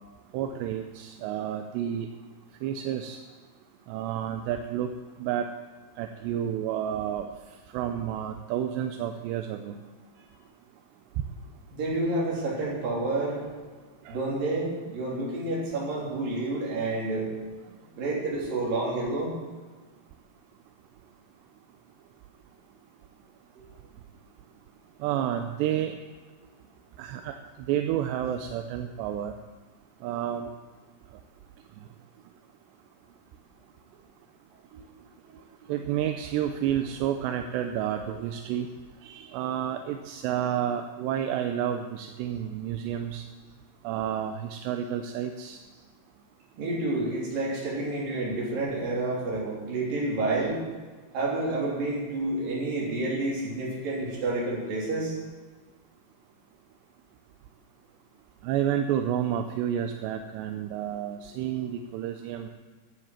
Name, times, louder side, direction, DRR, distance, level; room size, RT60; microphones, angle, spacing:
voice 1, 0.3-2.1 2.6-3.2 3.9-4.9 5.2-5.5 6.0-7.3 7.7-9.8 14.1-14.2 25.0-25.9 27.0-27.4 27.7-29.3 30.0-30.5 35.7-38.7 39.0-43.2 43.8-45.6 58.4-62.5, right 10 dB, 80° right, 6 dB, 2.6 m, -30 dB
voice 2, 11.7-13.4 14.1-17.3 17.9-19.3 23.6-23.7 34.7-34.8 35.6-35.7 46.6-50.6 51.1-55.2, right 2 dB, 50° right, -4 dB, 4.7 m, -29 dB
11.5 x 9.8 x 7.5 m, 1.4 s
omnidirectional pair, 5.3 m